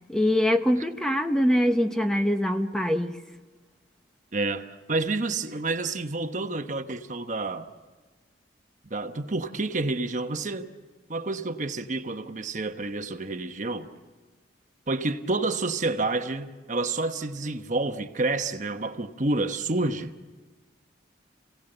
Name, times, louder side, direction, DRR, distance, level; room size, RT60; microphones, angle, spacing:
voice 1, 0.1-3.2, equal, 5° left, 0.9 m, -23 dB
voice 2, 4.3-7.7 8.9-10.7 11.1-13.9 14.9-20.1, right 2 dB, 45° right, 1.1 m, -29 dB
29.5 x 17.5 x 8.0 m
head